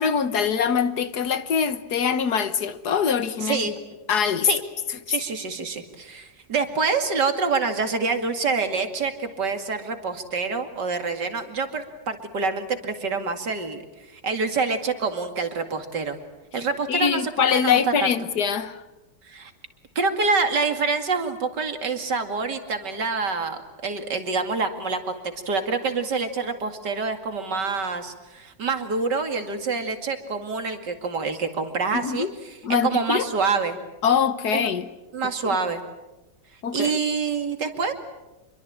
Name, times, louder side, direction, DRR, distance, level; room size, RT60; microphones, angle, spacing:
voice 1, 0.0-3.6 4.1-4.5 5.1-5.2 16.9-18.8 31.9-32.3 32.6-33.2 34.0-34.9 35.4-35.6 36.6-36.9, left 7 dB, 65° left, 1.7 m, -23 dB
voice 2, 3.4-3.7 4.4-4.6 5.1-13.8 14.1-16.2 16.5-18.1 19.2-19.5 20.0-25.2 25.5-32.6 32.8-33.8 34.5-34.7 35.1-35.8 36.7-37.9, right 4 dB, 70° right, 3.0 m, -26 dB
27.0 x 23.0 x 8.9 m
omnidirectional pair, 1.9 m